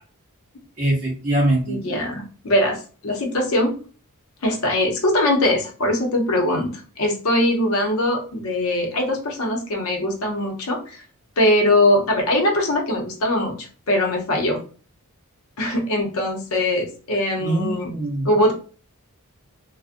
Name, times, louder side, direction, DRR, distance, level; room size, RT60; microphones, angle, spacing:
voice 1, 0.8-2.0 17.4-18.3, right 1 dB, 35° right, -6 dB, 0.7 m, -23 dB
voice 2, 1.7-3.7 4.4-11.0 11.4-14.6 15.6-17.9 18.2-18.5, left 1 dB, 70° left, 2 dB, 0.7 m, -21 dB
2.4 x 2.1 x 2.5 m, 0.38 s
head